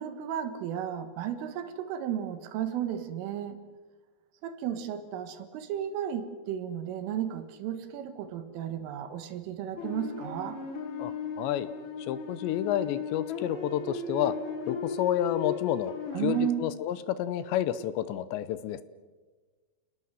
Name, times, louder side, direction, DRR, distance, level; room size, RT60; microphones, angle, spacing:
voice 1, 0.0-3.6 4.4-10.6 16.1-16.7, right 10 dB, 75° right, 9 dB, 4.1 m, -33 dB
sound 1, 9.8-16.5, left 6 dB, 45° left, 2.9 m, -36 dB
voice 2, 11.0-11.7 12.1-14.4 14.7-15.9 16.2-18.8, left 11 dB, 75° left, 14 dB, 2.7 m, -30 dB
30.0 x 19.0 x 7.6 m, 1.3 s
omnidirectional pair, 5.8 m